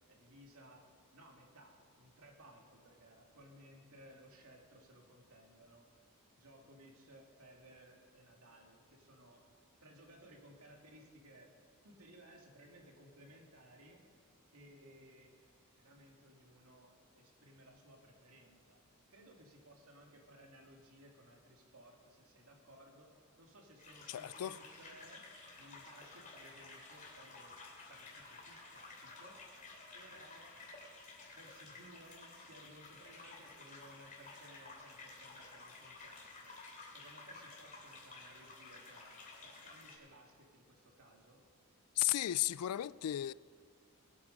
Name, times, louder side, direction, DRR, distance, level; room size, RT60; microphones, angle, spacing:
voice 1, 0.1-0.8 1.1-9.4 9.8-11.5 11.8-15.5 15.7-18.8 19.1-25.2 25.6-30.5 31.3-41.4, right 1 dB, 75° right, 2.3 m, -60 dB
sound 1, 23.8-40.0, left 3 dB, 35° left, 3.0 m, -53 dB
voice 2, 24.1-24.6 42.0-43.3, left 14 dB, 80° left, 0.3 m, -34 dB
21.5 x 8.5 x 5.1 m
head